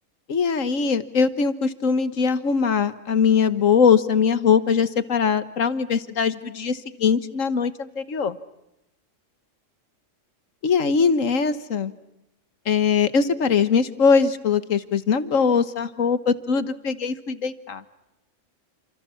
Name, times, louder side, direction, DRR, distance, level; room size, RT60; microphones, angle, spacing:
voice 1, 0.3-8.4 10.6-11.9 12.7-17.8, left 6 dB, 75° left, 13 dB, 1.6 m, -21 dB
29.0 x 27.0 x 7.0 m, 0.90 s
omnidirectional pair, 1.3 m